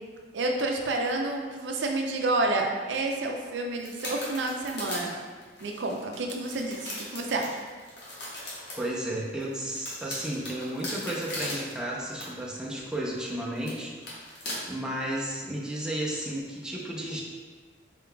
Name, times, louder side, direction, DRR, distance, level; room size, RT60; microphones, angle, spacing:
voice 1, 0.3-5.2 5.6-7.6, right 2 dB, 90° right, 2 dB, 0.5 m, -29 dB
sound 1, 3.7-8.8 9.4-11.7 12.1-12.2 13.2-13.3 13.6-13.7 14.0-14.7, left 1 dB, 70° left, 1.1 m, -38 dB
voice 2, 8.8-14.4 14.7-17.2, right 1 dB, 5° right, -5 dB, 0.5 m, -33 dB
4.3 x 3.8 x 2.2 m, 1.5 s
head